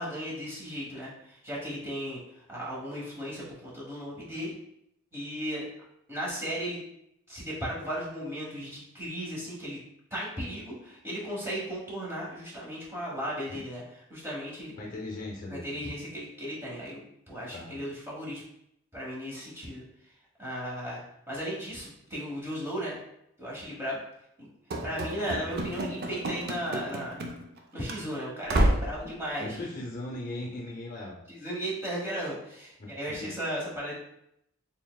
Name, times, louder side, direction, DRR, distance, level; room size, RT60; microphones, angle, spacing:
voice 1, 0.0-4.5 5.1-5.6 6.1-6.8 7.3-9.8 10.1-13.8 14.1-14.7 15.5-18.4 18.9-19.8 20.4-21.0 21.3-23.0 23.4-24.0 24.4-24.5 24.8-27.3 27.7-29.6 31.3-33.9, equal, 10° right, -6 dB, 1.2 m, -36 dB
voice 2, 14.8-15.8 17.5-17.8 29.4-31.2 32.8-32.9 33.2-33.3, left 2 dB, 40° left, -1 dB, 0.6 m, -38 dB
Run / Slam, 24.7-27.6 27.8-28.0 28.5-29.0, right 1 dB, 50° right, 0.5 m, -29 dB
4.3 x 3.4 x 2.3 m, 0.77 s
head